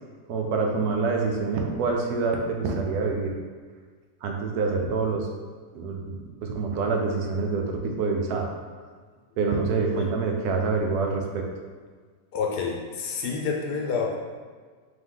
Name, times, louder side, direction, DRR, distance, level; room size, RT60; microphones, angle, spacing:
voice 1, 0.3-3.4 4.2-5.3 5.7-8.5 9.4-11.5, right 4 dB, 80° right, 2 dB, 1.1 m, -26 dB
voice 2, 12.3-14.2, left 5 dB, 85° left, 0 dB, 1.2 m, -28 dB
3.6 x 2.9 x 3.7 m, 1.5 s
omnidirectional pair, 1.7 m